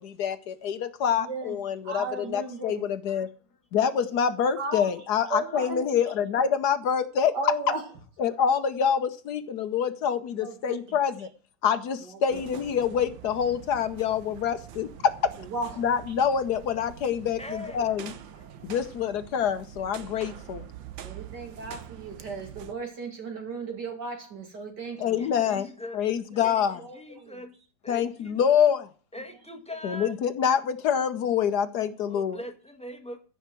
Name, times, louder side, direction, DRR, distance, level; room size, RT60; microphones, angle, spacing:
voice 1, 0.0-3.3 3.7-7.3 8.2-11.3 11.6-15.3 15.8-18.1 18.6-20.7 25.0-25.7 25.9-26.8 27.9-28.9 29.8-32.4, left 8 dB, 65° left, 1.3 m, -26 dB
voice 2, 1.2-2.9 4.6-4.9 5.3-5.9 7.3-7.9 10.4-11.3 12.0-12.4 15.5-15.8 18.4-18.7 21.0-25.2 26.4-27.4 29.2-29.3 32.2-32.3, right 3 dB, 65° right, 2.6 m, -36 dB
sound 1, 12.3-22.7, right 10 dB, 85° right, 1.7 m, -45 dB
voice 3, 17.4-17.9 24.9-26.0 26.3-26.5 26.9-27.5 27.8-28.4 29.1-30.1 32.0-33.2, left 1 dB, 5° left, 1.4 m, -41 dB
15.0 x 5.6 x 7.5 m
omnidirectional pair, 2.0 m